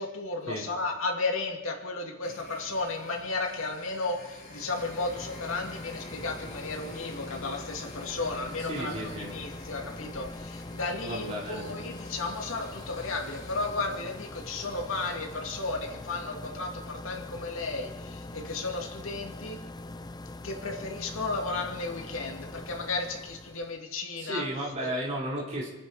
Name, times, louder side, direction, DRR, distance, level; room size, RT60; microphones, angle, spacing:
voice 1, 0.0-19.6 20.4-24.4 24.8-24.9, left 3 dB, 85° left, 1 dB, 2.4 m, -34 dB
sound 1, 2.2-17.0, left 1 dB, 40° left, 5.0 m, -49 dB
sound 2, 4.4-23.8, left 2 dB, 20° left, 0.5 m, -43 dB
voice 2, 8.6-9.3 11.0-11.8 24.2-25.7, right 1 dB, 35° right, -5 dB, 3.7 m, -34 dB
28.5 x 9.8 x 4.1 m, 1.2 s
head